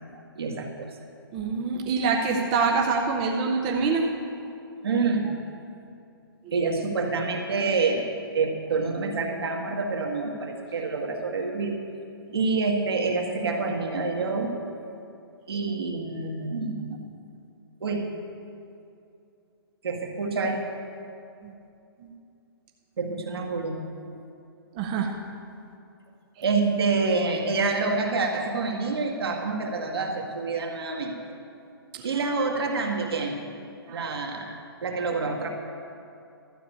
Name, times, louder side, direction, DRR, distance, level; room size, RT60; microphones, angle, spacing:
voice 1, 0.1-0.9 4.8-5.3 6.5-8.1 8.3-11.8 12.3-14.5 15.5-17.0 17.8-18.1 19.8-20.6 23.0-24.1 26.4-31.2 32.0-33.4 33.9-35.5, right 4 dB, 70° right, 1 dB, 1.9 m, -27 dB
voice 2, 1.3-4.1 21.4-21.5 22.0-22.1 24.7-25.1 31.9-32.1 33.9-34.0, right 4 dB, 20° right, 0 dB, 0.5 m, -25 dB
12.5 x 6.8 x 8.6 m, 2.6 s
hypercardioid pair, 170°, 13 cm